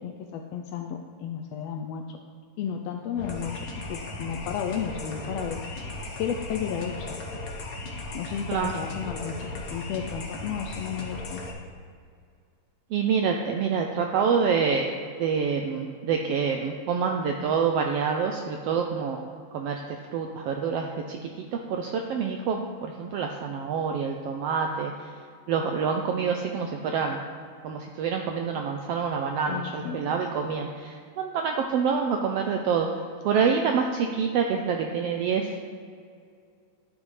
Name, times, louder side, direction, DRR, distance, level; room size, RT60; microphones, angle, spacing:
voice 1, 0.0-2.2 2.6-3.5 3.9-5.6 6.2-7.2 8.1-11.4 29.5-30.2, left 8 dB, 80° left, 4 dB, 1.5 m, -33 dB
sound 1, 3.2-11.5, left 2 dB, 60° left, 0.9 m, -37 dB
voice 2, 12.9-14.9 15.2-19.2 19.5-24.9 25.5-27.2 27.6-32.9 33.2-35.6, right 6 dB, 85° right, 3 dB, 1.4 m, -27 dB
12.5 x 9.3 x 3.2 m, 2.3 s
omnidirectional pair, 3.4 m